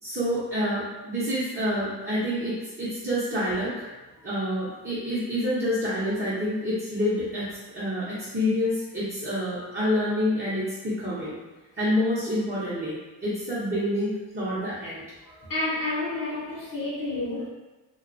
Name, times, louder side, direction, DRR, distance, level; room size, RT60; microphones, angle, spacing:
voice 1, 0.0-3.9 4.2-11.3 11.8-15.0, equal, 25° right, -10 dB, 0.7 m, -28 dB
voice 2, 15.3-17.5, left 2 dB, 50° left, -6 dB, 0.8 m, -30 dB
2.3 x 2.2 x 2.5 m, 1.1 s
cardioid pair, 90°, 43 cm